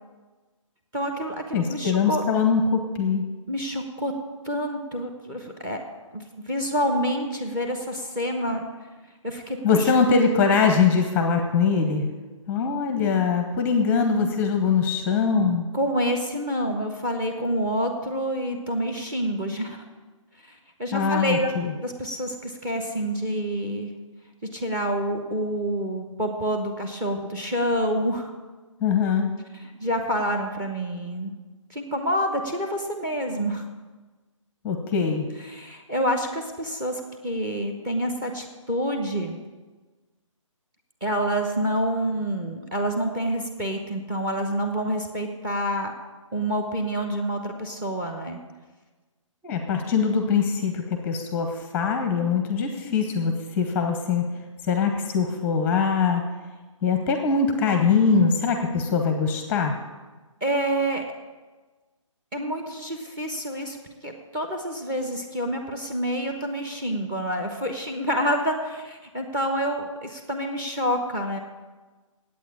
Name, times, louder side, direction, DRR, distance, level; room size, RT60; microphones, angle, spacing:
voice 1, 0.9-2.2 3.5-4.1 4.4-5.8 6.1-8.7 9.2-9.9 15.7-19.8 20.4-21.5 21.8-23.9 24.5-28.3 29.5-31.3 31.7-33.6 35.4-39.4 41.0-45.9 46.3-48.4 60.4-61.0 62.3-63.8 64.0-71.4, equal, 15° right, 4 dB, 1.0 m, -28 dB
voice 2, 1.5-3.3 9.6-12.1 12.5-15.7 20.9-21.7 28.8-29.3 34.6-35.3 49.4-54.3 54.6-56.2 56.8-59.8, left 5 dB, 10° left, 5 dB, 0.8 m, -22 dB
9.1 x 8.6 x 8.5 m, 1.3 s
hypercardioid pair, 155°, 17 cm